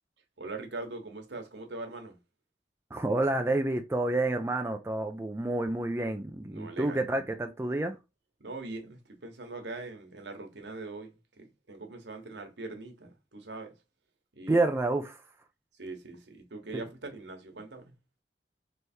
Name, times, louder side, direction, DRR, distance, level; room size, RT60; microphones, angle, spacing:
voice 1, 0.4-2.2 6.5-7.2 8.4-13.7 14.3-14.6 15.8-17.9, right 3 dB, 75° right, 1.2 m, -42 dB
voice 2, 2.9-7.9 14.5-15.2, right 2 dB, 15° right, 0.4 m, -29 dB
3.3 x 3.2 x 4.4 m
head